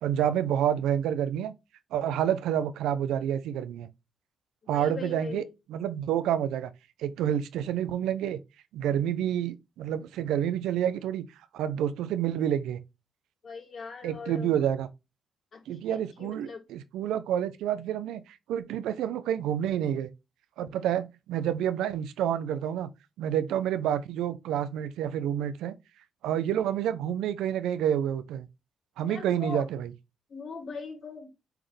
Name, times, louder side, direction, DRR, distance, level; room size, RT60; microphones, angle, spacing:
voice 1, 0.0-1.5 1.9-3.9 4.7-5.4 5.7-6.7 7.0-8.4 8.7-11.2 11.5-12.8 14.0-14.9 15.7-20.1 20.6-22.9 23.2-25.8 26.2-28.5 29.0-29.9, right 10 dB, 90° right, 0.7 m, -28 dB
voice 2, 4.6-5.5 13.4-14.6 15.5-16.6 29.0-29.7 30.3-31.3, left 5 dB, 55° left, 3.1 m, -41 dB
9.2 x 3.9 x 3.3 m
supercardioid pair, 65°, 0 cm